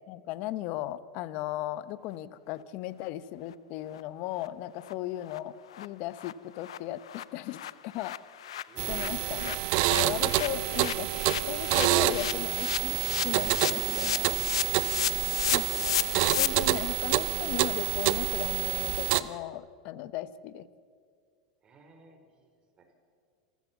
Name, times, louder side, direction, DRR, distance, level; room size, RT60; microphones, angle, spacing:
voice 1, 0.1-8.2 8.9-9.6 9.9-11.1 11.5-13.0 13.2-14.4 15.5-15.9 16.2-20.7, left 14 dB, 55° left, 16 dB, 0.9 m, -36 dB
sound 1, 3.5-3.6 3.9-4.0 4.4-4.5 4.8-4.9 5.3-5.4 5.7-5.9 6.2-6.3 6.6-16.5, left 12 dB, 85° left, 0.6 m, -34 dB
voice 2, 8.7-9.0 21.6-22.5 22.8-22.9, right 3 dB, 30° right, 5 dB, 4.1 m, -58 dB
sound 2, 8.8-19.2, right 16 dB, 60° right, 0.8 m, -28 dB
27.5 x 15.0 x 7.0 m, 2.1 s
hypercardioid pair, 105°, 3 cm